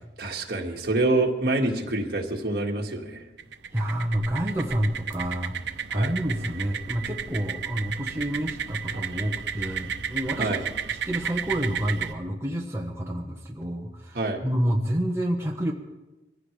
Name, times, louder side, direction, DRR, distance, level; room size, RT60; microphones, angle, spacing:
voice 1, 0.2-3.2 5.9-6.1 10.4-10.6 14.1-14.4, right 2 dB, 55° right, 0 dB, 1.9 m, -26 dB
sound 1, 3.4-12.1, right 7 dB, 85° right, 0.8 m, -33 dB
voice 2, 3.7-5.5 5.9-10.5 11.1-15.7, equal, 15° right, 0 dB, 1.1 m, -28 dB
24.0 x 15.5 x 3.4 m, 1.1 s
head